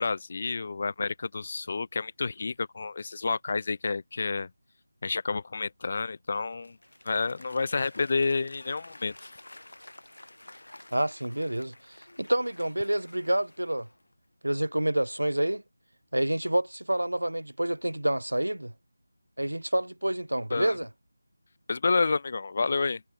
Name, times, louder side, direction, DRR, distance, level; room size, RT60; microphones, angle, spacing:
voice 1, 0.0-4.5 5.0-6.8 7.1-9.3 20.5-20.8 21.7-23.0, left 4 dB, 40° left, 0.3 m, -29 dB
Applause / Crowd, 6.3-14.1, left 1 dB, 75° left, 4.1 m, -51 dB
voice 2, 10.9-11.7 12.2-13.9 14.4-15.6 16.1-18.7 19.4-20.9, right 1 dB, 85° right, 0.3 m, -28 dB
figure-of-eight pair, 165°, 0 cm